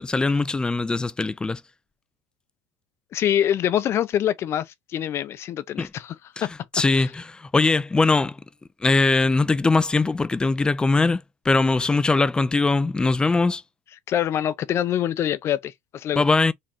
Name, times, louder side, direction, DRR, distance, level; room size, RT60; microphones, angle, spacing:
voice 1, 0.0-1.6 5.8-5.9 6.4-6.5 6.7-8.4 8.8-13.6 16.2-16.5, left 3 dB, 15° left, 0.4 m, -21 dB
voice 2, 3.1-6.1 6.4-6.5 7.0-7.1 14.1-16.2, left 10 dB, 45° left, 0.7 m, -25 dB
3.7 x 3.1 x 4.4 m
hypercardioid pair, 90°, 6 cm